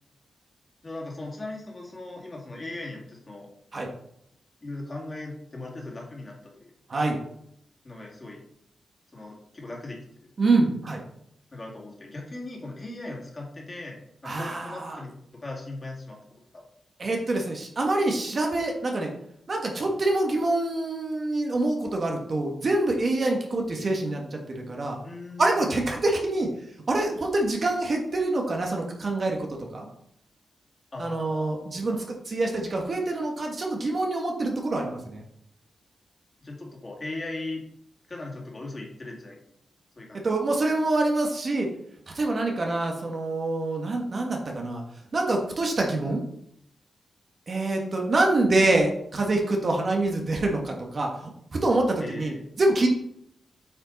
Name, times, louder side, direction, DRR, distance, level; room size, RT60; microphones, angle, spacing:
voice 1, 0.8-3.5 4.6-6.7 7.8-8.4 9.1-10.0 10.5-10.7 11.5-15.1 15.4-16.2 16.5-16.6 17.0-17.1 25.0-25.8 30.9-31.5 31.9-32.0 36.4-37.6 38.1-39.4 40.0-40.3 52.0-52.5, left 2 dB, 25° left, -2 dB, 2.2 m, -38 dB
voice 2, 10.4-11.0 14.2-15.0 17.0-19.1 19.5-25.0 25.4-26.5 26.9-29.5 29.7-29.9 31.0-35.2 40.2-41.7 42.1-44.8 45.1-46.2 47.5-52.9, right 2 dB, 40° right, 1 dB, 1.4 m, -26 dB
8.8 x 5.4 x 4.0 m, 0.72 s
wide cardioid pair, 140°, 0 cm